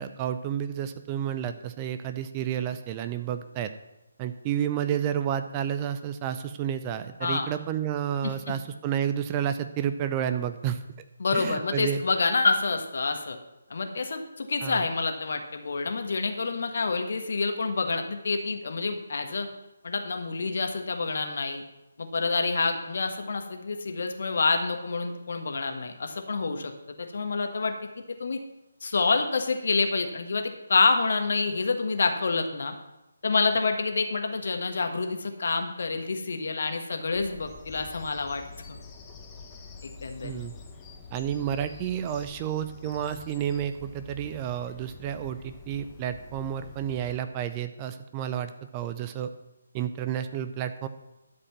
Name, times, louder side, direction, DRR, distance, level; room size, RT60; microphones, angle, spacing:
voice 1, 0.0-3.7 4.2-10.8 11.3-12.0 14.6-14.9 40.2-40.5 41.1-49.3 49.7-50.9, right 9 dB, 25° right, 10 dB, 0.6 m, -30 dB
voice 2, 8.2-8.6 11.2-13.4 13.7-19.5 19.8-21.6 22.0-27.9 28.2-28.4 28.8-32.7 33.2-38.4 38.7-38.8 39.8-40.3, left 4 dB, 55° left, 5 dB, 1.6 m, -27 dB
Bird vocalization bird call bird song, 37.1-47.2, left 4 dB, 15° left, 1.2 m, -47 dB
12.0 x 5.2 x 7.4 m, 0.95 s
figure-of-eight pair, 145°, 0 cm